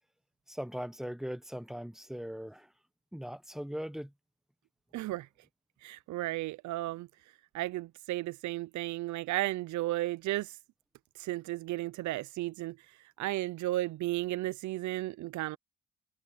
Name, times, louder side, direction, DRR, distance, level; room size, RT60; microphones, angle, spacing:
voice 1, 0.5-2.7 3.1-4.1, equal, ahead, 1.4 m, -39 dB
voice 2, 4.9-5.3 5.8-7.1 7.5-10.6 11.2-12.8 13.2-15.6, right 16 dB, 70° right, 0.6 m, -34 dB
cardioid pair, 90°, 30 cm